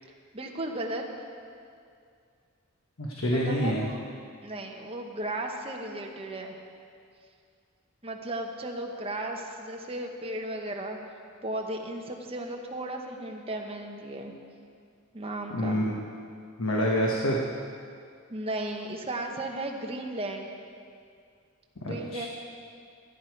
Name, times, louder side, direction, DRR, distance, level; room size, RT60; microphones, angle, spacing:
voice 1, 0.3-1.0 3.3-4.0 4.4-6.6 8.0-11.0 11.4-14.3 15.1-15.8 18.3-20.5 21.8-22.3, right 1 dB, 30° right, 2 dB, 1.1 m, -35 dB
voice 2, 3.0-3.9 15.5-15.9 16.6-17.4 21.8-22.3, equal, 75° left, -1 dB, 1.2 m, -27 dB
15.0 x 10.0 x 4.6 m, 2.3 s
head